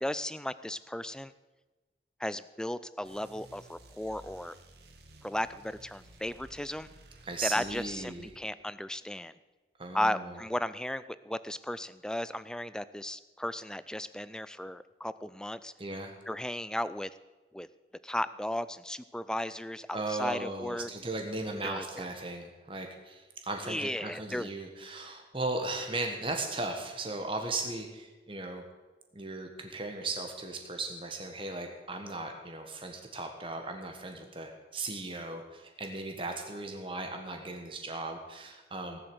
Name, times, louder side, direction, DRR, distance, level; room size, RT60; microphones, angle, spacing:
voice 1, 0.0-1.3 2.2-4.6 5.2-6.9 7.4-9.3 9.9-15.7 16.3-17.1 17.5-17.7 18.0-20.9 21.6-22.1 23.7-24.5, left 1 dB, 5° left, 15 dB, 0.4 m, -35 dB
sound 1, 3.0-8.3, right 1 dB, 65° right, 2.0 m, -55 dB
voice 2, 7.2-8.3 9.8-10.4 15.8-16.1 19.9-28.6 29.1-39.0, right 2 dB, 30° right, 4 dB, 1.5 m, -37 dB
17.5 x 7.8 x 7.9 m, 1.2 s
head